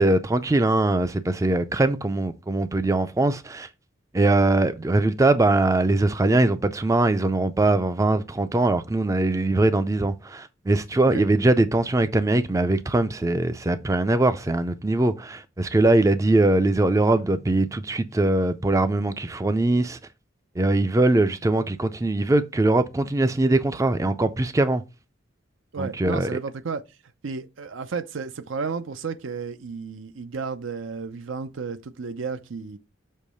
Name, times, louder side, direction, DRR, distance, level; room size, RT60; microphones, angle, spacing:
voice 1, 0.0-3.7 4.1-20.0 20.6-24.8 25.8-26.4, right 2 dB, 15° right, 0.4 m, -21 dB
voice 2, 25.7-26.8 27.2-32.8, right 5 dB, 80° right, 0.6 m, -32 dB
6.5 x 3.0 x 5.2 m
head